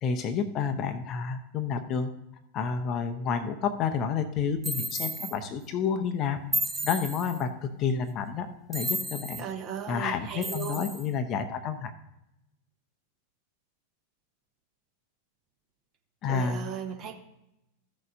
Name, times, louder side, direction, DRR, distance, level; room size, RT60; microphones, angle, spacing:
voice 1, 0.0-2.1 2.5-6.4 6.8-9.4 9.9-11.9 16.2-16.6, left 6 dB, 35° left, 9 dB, 0.8 m, -30 dB
sound 1, 4.6-5.3 6.5-7.4 8.7-9.4 10.4-11.1, right 1 dB, 10° right, 0.6 m, -32 dB
voice 2, 9.4-10.8 16.3-17.1, right 8 dB, 35° right, 4 dB, 1.1 m, -36 dB
14.5 x 6.6 x 2.6 m, 0.89 s
figure-of-eight pair, 90°, 0 cm